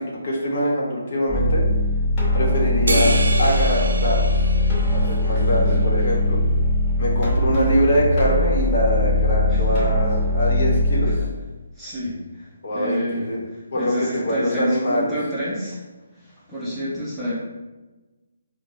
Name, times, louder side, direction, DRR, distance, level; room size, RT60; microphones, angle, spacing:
voice 1, 0.0-1.7 2.3-3.1 3.4-4.2 4.9-6.4 7.0-11.1 12.6-13.4 13.7-15.1, equal, 50° left, -3 dB, 1.1 m, -23 dB
sound 1, 1.3-11.1, left 1 dB, 20° left, 1.1 m, -20 dB
sound 2, 2.9-5.6, right 2 dB, 80° right, 0.5 m, -27 dB
voice 2, 5.3-5.8 9.5-9.8 11.0-11.3 11.8-15.8 16.2-17.3, equal, ahead, -12 dB, 0.8 m, -29 dB
4.6 x 2.2 x 2.7 m, 1.2 s
hypercardioid pair, 155°, 0 cm